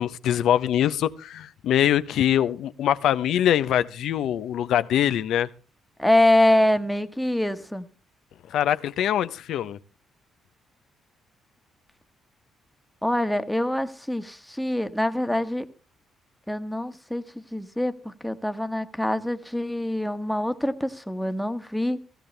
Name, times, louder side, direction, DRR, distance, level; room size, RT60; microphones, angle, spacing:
voice 1, 0.0-5.5 8.5-9.8, left 10 dB, 75° left, 0.7 m, -23 dB
voice 2, 6.0-7.8 13.0-15.6 16.5-22.0, left 1 dB, 5° left, 1.3 m, -24 dB
16.0 x 16.0 x 3.3 m
cardioid pair, 90°, 0 cm